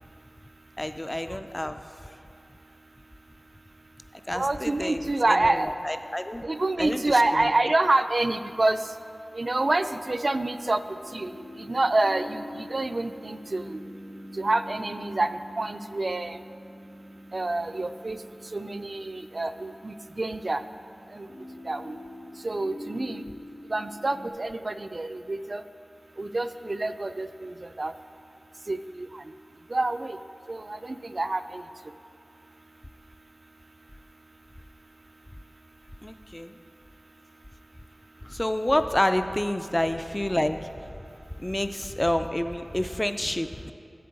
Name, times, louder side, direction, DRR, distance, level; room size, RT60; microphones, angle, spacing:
voice 1, 0.8-2.2 4.3-6.5 6.8-7.5 36.0-36.6 38.2-40.7 41.4-43.7, left 1 dB, 20° left, 9 dB, 0.3 m, -29 dB
voice 2, 4.3-5.7 6.4-8.8 9.3-10.8 11.1-11.3 11.6-13.8 14.4-15.3 15.6-16.4 17.3-18.2 18.5-20.6 21.1-21.3 21.7-22.0 22.4-23.2 23.7-25.6 26.2-27.9 28.7-29.1 29.7-30.2 30.5-31.6, right 2 dB, 60° right, 10 dB, 0.3 m, -27 dB
sound 1, 11.0-24.3, left 1 dB, 70° left, 2.1 m, -45 dB
10.5 x 7.8 x 3.8 m, 2.5 s
wide cardioid pair, 40°, 0 cm